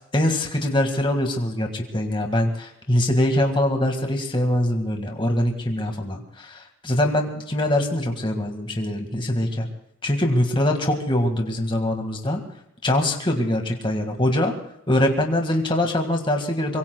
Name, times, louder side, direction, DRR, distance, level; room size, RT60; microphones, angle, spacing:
voice 1, 0.1-9.7 10.0-12.4 12.8-14.5 14.9-16.8, left 1 dB, 25° left, 3 dB, 1.8 m, -23 dB
25.0 x 23.5 x 2.3 m, 0.80 s
head